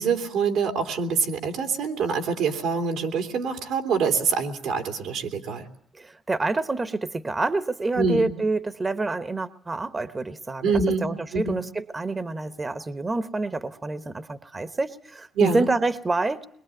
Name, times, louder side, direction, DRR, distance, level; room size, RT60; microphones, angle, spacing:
voice 1, 0.0-5.6 7.9-8.3 10.6-11.6 15.3-15.7, right 5 dB, 90° right, 5 dB, 3.0 m, -25 dB
voice 2, 6.0-10.6 11.0-16.5, right 3 dB, 25° right, 12 dB, 1.0 m, -27 dB
22.5 x 22.0 x 9.0 m, 0.69 s
cardioid pair, 90°, 0 cm